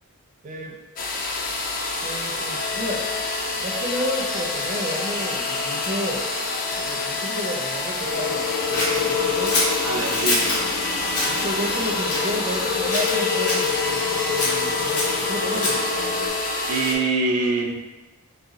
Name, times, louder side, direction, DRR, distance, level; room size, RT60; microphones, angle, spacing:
voice 1, 0.4-0.8 2.0-3.1 3.5-6.3 6.8-9.6 11.2-15.8, equal, 35° right, 0 dB, 0.5 m, -31 dB
sound 1, 1.0-16.9, left 3 dB, 40° left, 0.4 m, -27 dB
sound 2, 8.0-16.3, left 6 dB, 65° left, 1.3 m, -28 dB
Scissors, 8.7-10.6 11.1-11.4 12.0-12.7 12.9-13.7 14.4-15.9, left 2 dB, 85° left, 1.1 m, -26 dB
voice 2, 9.8-10.7 16.7-17.7, right 3 dB, 90° right, 2 dB, 0.6 m, -24 dB
4.0 x 2.2 x 3.8 m, 1.1 s
head